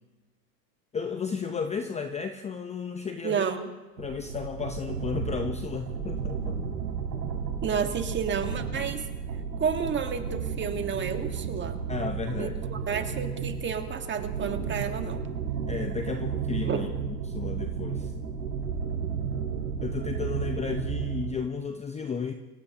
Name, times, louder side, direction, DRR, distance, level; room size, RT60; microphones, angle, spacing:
voice 1, 0.9-3.5 4.0-6.6 11.9-12.6 15.7-18.1 19.8-22.3, left 6 dB, 15° left, 7 dB, 0.7 m, -33 dB
voice 2, 3.2-3.7 7.6-9.0 9.6-11.8 12.4-15.2 16.7-16.8, right 6 dB, 20° right, 6 dB, 1.7 m, -31 dB
Massive Structure Bend, 4.0-21.4, right 6 dB, 90° right, 3.4 m, -33 dB
26.5 x 17.0 x 2.9 m, 1.2 s
hypercardioid pair, 110°, 49 cm